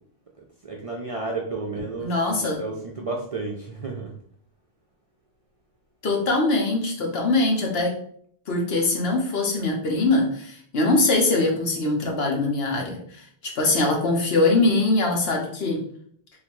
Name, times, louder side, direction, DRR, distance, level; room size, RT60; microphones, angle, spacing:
voice 1, 0.6-4.2, right 3 dB, 45° right, -1 dB, 0.5 m, -32 dB
voice 2, 2.0-2.6 6.0-7.9 8.5-13.2 13.6-15.8, left 2 dB, 70° left, 0 dB, 1.2 m, -22 dB
3.7 x 2.5 x 4.5 m, 0.62 s
omnidirectional pair, 1.1 m